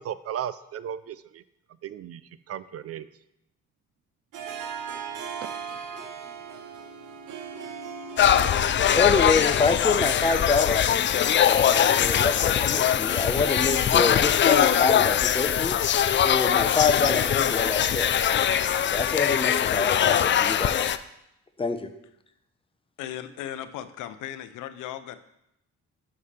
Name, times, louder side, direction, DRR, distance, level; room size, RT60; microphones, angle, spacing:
voice 1, 0.0-1.4 1.8-2.2 2.5-3.1 5.4-5.5, right 10 dB, 50° right, 15 dB, 0.4 m, -35 dB
Harp, 4.3-9.8, right 6 dB, 80° right, 1.1 m, -38 dB
sound 1, 8.2-21.0, left 9 dB, 40° left, 0.4 m, -22 dB
voice 2, 8.9-10.9 11.4-15.8 16.2-18.1 18.8-20.9 21.6-21.9, left 4 dB, 20° left, 7 dB, 0.8 m, -26 dB
voice 3, 23.0-25.2, left 11 dB, 85° left, 11 dB, 0.6 m, -37 dB
11.5 x 5.6 x 3.3 m, 0.82 s
cardioid pair, 90°, 30 cm